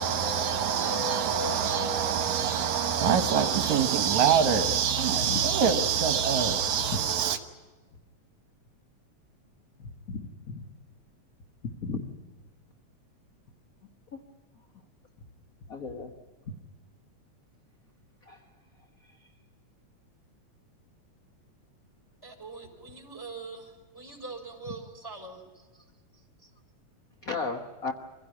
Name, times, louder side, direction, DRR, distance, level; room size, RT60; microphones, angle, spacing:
voice 1, 0.0-7.4, right 7 dB, 75° right, 2.5 m, -25 dB
voice 2, 10.1-10.6 11.8-12.1 15.7-16.1 18.3-18.4 27.2-27.9, left 4 dB, 50° left, 1.0 m, -34 dB
voice 3, 22.2-25.4, right 3 dB, 5° right, 5.0 m, -42 dB
25.5 x 16.5 x 9.9 m
omnidirectional pair, 3.3 m